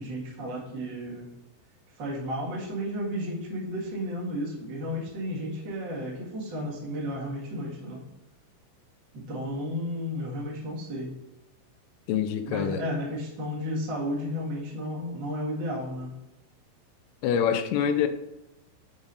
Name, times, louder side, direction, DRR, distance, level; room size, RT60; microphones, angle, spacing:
voice 1, 0.0-1.3 2.0-8.0 9.1-11.1 12.4-16.1, equal, 55° right, -5 dB, 1.2 m, -33 dB
voice 2, 12.1-12.8 17.2-18.1, left 8 dB, 85° left, 9 dB, 3.1 m, -25 dB
7.1 x 5.2 x 4.0 m, 0.93 s
omnidirectional pair, 5.5 m